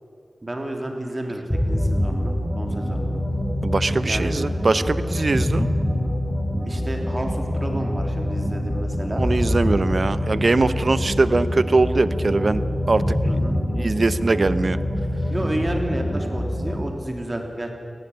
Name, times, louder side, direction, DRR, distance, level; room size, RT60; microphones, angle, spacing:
voice 1, 0.4-3.2 4.1-4.4 6.5-9.2 13.2-13.6 15.3-17.7, right 1 dB, 35° right, 3 dB, 3.4 m, -31 dB
sound 1, 1.5-16.9, left 1 dB, 10° left, 3.0 m, -25 dB
voice 2, 3.6-5.7 9.2-13.4 13.7-14.8, right 3 dB, 60° right, 14 dB, 0.8 m, -22 dB
19.0 x 14.5 x 9.8 m, 2.6 s
cardioid pair, 45°, 0 cm